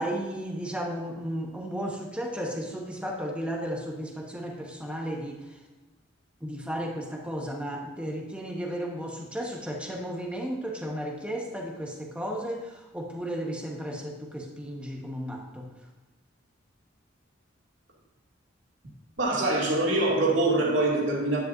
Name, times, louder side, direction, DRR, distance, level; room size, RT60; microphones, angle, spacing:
voice 1, 0.0-5.6 6.4-15.7, equal, 5° right, 0 dB, 1.2 m, -34 dB
voice 2, 19.2-21.4, right 2 dB, 65° right, -3 dB, 2.4 m, -24 dB
10.5 x 9.9 x 2.6 m, 1.2 s
head